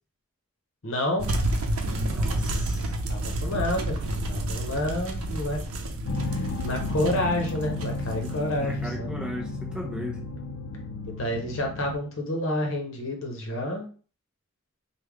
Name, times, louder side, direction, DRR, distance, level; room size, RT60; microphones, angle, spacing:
voice 1, 0.8-1.3 3.1-4.0 4.3-5.6 6.3-9.1 11.0-13.9, left 1 dB, 60° left, 2 dB, 0.8 m, -29 dB
sound 1, 1.2-8.8, right 1 dB, 80° right, 0.6 m, -30 dB
voice 2, 1.9-2.9 3.5-3.6 8.6-10.2, equal, 5° right, -1 dB, 0.6 m, -37 dB
sound 2, 6.0-12.0, left 2 dB, 85° left, 0.5 m, -33 dB
3.4 x 2.2 x 3.5 m, 0.39 s
head